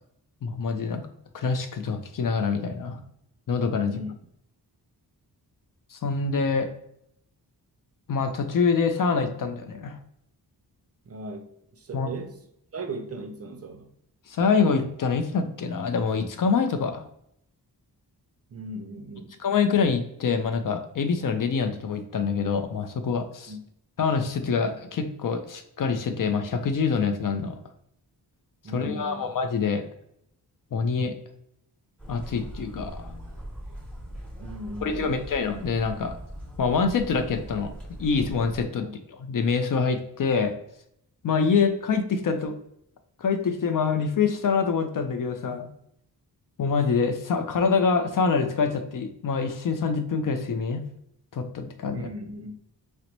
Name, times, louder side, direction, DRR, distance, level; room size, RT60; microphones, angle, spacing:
voice 1, 0.4-1.1 1.3-3.0 3.5-3.9 5.9-6.7 8.1-10.0 11.9-12.1 14.3-17.1 19.4-23.5 24.0-27.6 28.7-29.8 30.7-31.1 32.1-33.2 34.8-36.2 36.6-37.7 38.0-40.5 41.2-42.6 43.2-45.7 46.6-50.8 51.3-52.1, left 5 dB, 55° left, 7 dB, 0.5 m, -25 dB
voice 2, 3.8-4.1 11.0-12.4 12.7-13.9 18.5-19.4 23.5-23.6 28.6-29.3 34.4-35.2 38.8-39.0 51.9-52.5, right 1 dB, 40° right, 4 dB, 0.4 m, -37 dB
sound 1, 32.0-38.6, equal, 5° left, 1.0 m, -40 dB
3.9 x 2.1 x 2.9 m, 0.74 s
wide cardioid pair, 105°, 41 cm